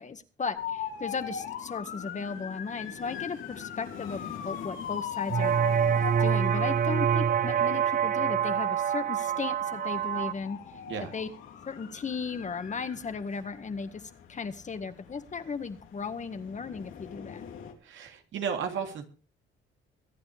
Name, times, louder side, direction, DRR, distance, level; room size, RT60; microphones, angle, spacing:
voice 1, 0.0-5.6 6.2-10.6 11.1-11.3 11.7-14.0 14.3-17.5, left 5 dB, 35° left, 10 dB, 1.8 m, -36 dB
sound 1, 0.6-17.7, left 8 dB, 85° left, 3.6 m, -41 dB
sound 2, 5.3-10.3, right 8 dB, 45° right, 0.7 m, -26 dB
voice 2, 17.8-19.0, right 6 dB, 75° right, 4 dB, 3.2 m, -33 dB
23.0 x 9.6 x 3.5 m, 0.36 s
cardioid pair, 90°, 20 cm